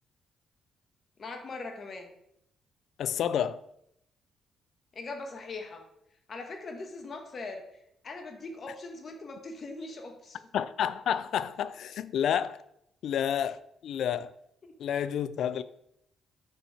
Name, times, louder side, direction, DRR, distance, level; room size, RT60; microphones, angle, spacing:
voice 1, 1.2-2.1 4.9-5.8 6.3-7.6 8.0-10.4 14.6-14.7, left 3 dB, 45° left, 1.3 m, -41 dB
voice 2, 3.0-3.6 10.5-12.6 13.0-14.3 14.8-15.6, left 9 dB, 70° left, 0.3 m, -30 dB
5.3 x 4.4 x 4.9 m
cardioid pair, 90°, 0 cm